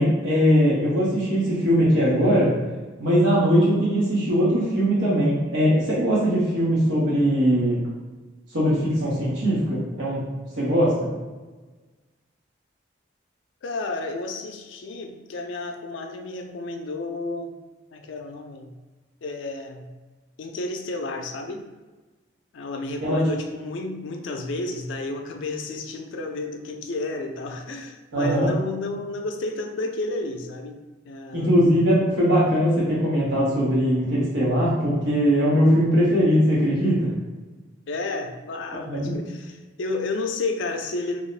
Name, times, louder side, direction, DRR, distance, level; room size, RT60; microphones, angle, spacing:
voice 1, 0.0-2.5 3.0-7.8 8.5-10.3 10.5-11.1 23.0-23.2 28.1-28.5 31.3-37.1 38.9-39.1, equal, 80° right, -8 dB, 1.0 m, -20 dB
voice 2, 13.6-17.5 17.9-18.7 19.2-19.9 20.4-21.7 22.5-30.8 31.1-31.8 37.9-41.2, left 2 dB, 80° left, 4 dB, 0.4 m, -31 dB
2.9 x 2.1 x 4.0 m, 1.3 s
head